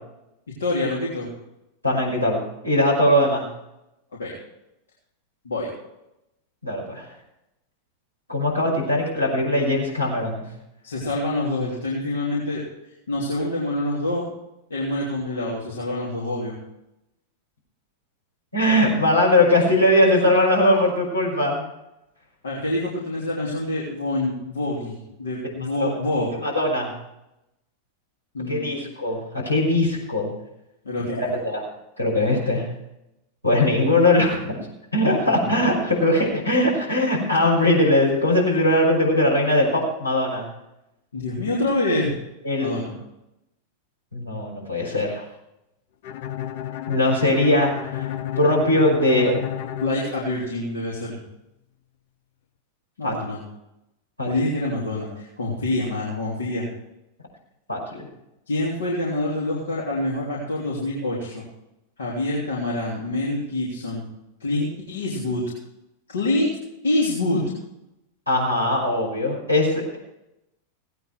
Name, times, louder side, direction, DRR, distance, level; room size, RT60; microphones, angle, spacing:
voice 1, 0.6-1.3 4.2-4.3 5.4-5.7 10.8-12.6 13.1-14.2 14.7-16.6 22.4-26.3 28.3-28.8 30.8-31.4 35.2-35.5 41.1-42.1 42.6-42.9 49.8-51.2 53.0-53.4 54.2-56.7 58.5-61.4 62.0-64.0 64.4-65.4 66.1-66.5 66.8-67.5, left 1 dB, 70° left, -5 dB, 3.3 m, -26 dB
voice 2, 1.8-3.5 6.6-7.1 8.3-10.4 18.5-21.6 25.8-26.0 26.4-26.9 28.5-30.3 31.1-31.6 32.0-32.7 33.4-34.6 34.9-40.5 42.4-42.7 44.1-45.2 46.9-48.1 48.4-49.3 53.0-53.4 54.2-54.3 57.7-58.1 68.3-70.0, left 1 dB, 85° left, -4 dB, 5.7 m, -20 dB
Bowed string instrument, 46.0-50.9, left 11 dB, 55° left, 0.8 m, -32 dB
17.0 x 9.2 x 4.7 m, 0.87 s
figure-of-eight pair, 90°, 0 cm